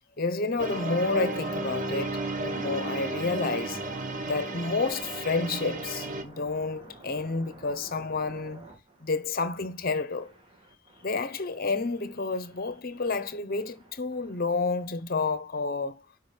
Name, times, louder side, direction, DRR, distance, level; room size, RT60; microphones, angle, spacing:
voice 1, 0.2-3.8 4.2-8.7 9.0-10.3 11.0-16.0, left 3 dB, 45° left, 0.9 m, -30 dB
sound 1, 0.6-6.2, right 2 dB, 40° right, 1.2 m, -33 dB
sound 2, 1.0-15.6, right 2 dB, 25° right, 2.2 m, -51 dB
9.5 x 5.1 x 3.3 m
head